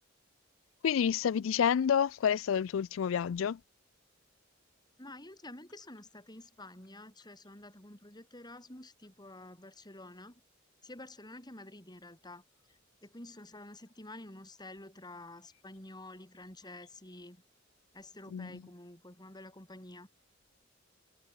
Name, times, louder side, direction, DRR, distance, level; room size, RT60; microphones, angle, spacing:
voice 1, 0.8-3.6 18.3-18.7, left 8 dB, 85° left, 0.4 m, -29 dB
voice 2, 5.0-10.4 10.8-12.4 12.7-17.4 17.9-20.1, left 1 dB, 20° left, 5.7 m, -49 dB
head